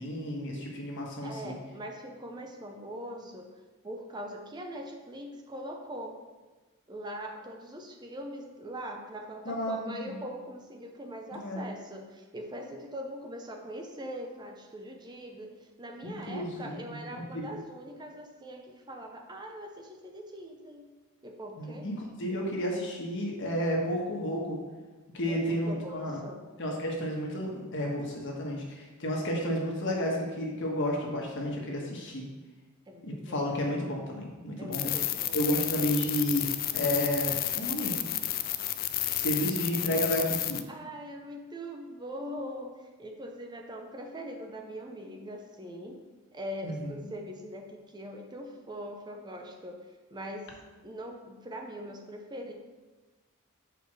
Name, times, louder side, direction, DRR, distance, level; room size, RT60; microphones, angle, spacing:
voice 1, 0.0-1.6 9.4-10.2 11.3-11.7 16.0-17.5 21.6-24.6 25.1-26.2 26.6-32.2 33.0-35.0 35.3-36.5 36.7-38.0 39.2-40.6 46.6-46.9, equal, 60° left, -1 dB, 1.4 m, -32 dB
voice 2, 1.2-3.5 3.8-6.2 6.9-20.9 21.2-21.9 25.3-25.4 25.7-26.4 32.9-33.7 34.6-35.6 40.7-46.0 46.3-49.8 50.1-50.5 50.8-52.5, equal, 20° right, 2 dB, 0.6 m, -42 dB
sound 1, 34.7-40.6, left 13 dB, 45° left, 0.4 m, -31 dB
5.0 x 4.8 x 6.2 m, 1.3 s
head